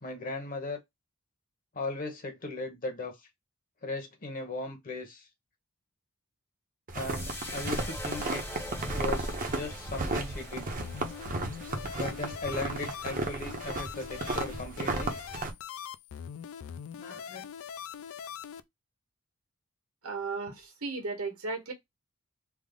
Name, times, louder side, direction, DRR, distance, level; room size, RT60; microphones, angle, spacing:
voice 1, 0.0-0.8 1.7-3.2 3.8-5.3 6.9-8.4 8.9-10.8 12.0-15.2 17.0-17.5, left 2 dB, 40° left, 0.9 m, -37 dB
sound 1, 6.9-15.5, right 2 dB, 40° right, 0.7 m, -34 dB
sound 2, 7.0-13.4, left 1 dB, 10° left, 0.7 m, -44 dB
sound 3, 10.8-18.6, left 8 dB, 65° left, 0.3 m, -42 dB
voice 2, 20.0-21.7, right 3 dB, 75° right, 1.4 m, -35 dB
3.4 x 2.0 x 3.5 m
head